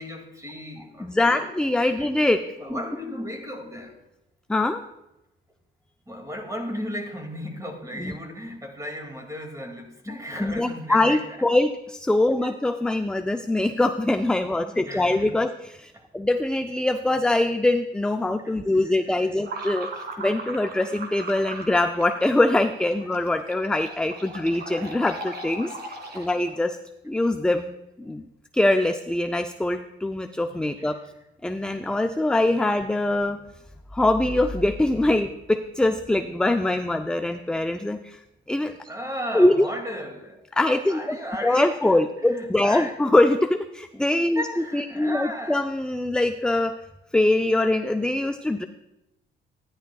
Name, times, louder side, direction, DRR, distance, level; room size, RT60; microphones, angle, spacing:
voice 1, 0.0-1.5 2.0-2.1 2.6-4.0 6.1-11.5 12.4-12.6 14.5-15.3 15.9-16.0 18.4-19.3 26.1-26.3 30.5-30.9 38.9-40.4 40.9-43.0 44.3-45.7, equal, 15° right, 3 dB, 2.2 m, -36 dB
voice 2, 1.0-2.4 2.7-2.8 4.5-4.8 8.0-8.1 10.4-19.9 20.2-25.7 26.1-26.8 27.0-28.3 28.5-31.0 31.4-33.4 33.9-38.2 38.5-38.9 39.3-39.7 40.6-41.2 41.4-44.4 44.7-46.7 47.1-48.7, left 2 dB, 5° left, 7 dB, 0.4 m, -23 dB
sound 1, 19.4-26.7, right 3 dB, 55° right, 2.1 m, -38 dB
13.5 x 10.0 x 2.3 m, 0.92 s
cardioid pair, 90°, 20 cm